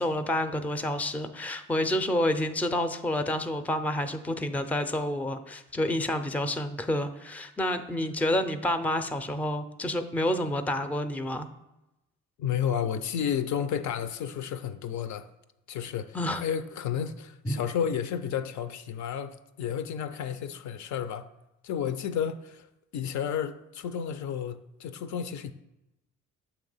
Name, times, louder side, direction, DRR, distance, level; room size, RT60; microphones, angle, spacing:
voice 1, 0.0-11.5 16.1-16.4 17.5-17.6, left 1 dB, 5° left, 0.4 m, -29 dB
voice 2, 12.4-15.3 15.7-21.3 21.6-22.7 22.9-25.5, left 8 dB, 70° left, 0.5 m, -32 dB
7.0 x 3.0 x 5.3 m
cardioid pair, 90°, 30 cm